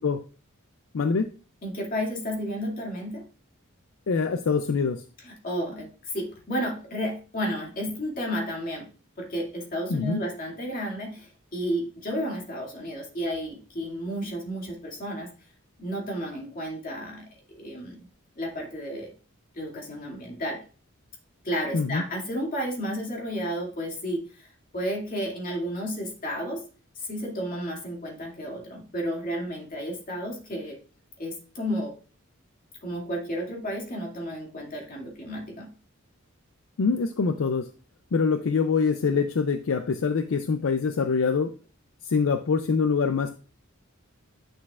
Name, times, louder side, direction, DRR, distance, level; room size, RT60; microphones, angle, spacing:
voice 1, 0.9-1.3 4.1-5.0 9.9-10.2 21.7-22.0 36.8-37.7 38.1-41.5 42.0-43.3, left 5 dB, 65° left, 9 dB, 0.4 m, -24 dB
voice 2, 1.6-3.3 5.2-8.9 9.2-15.3 15.8-17.3 17.5-18.1 18.4-19.1 19.5-20.6 21.4-24.5 24.7-26.6 27.0-30.8 31.2-31.9 32.8-35.7, equal, 40° left, -1 dB, 2.3 m, -32 dB
9.5 x 6.4 x 2.4 m, 0.37 s
head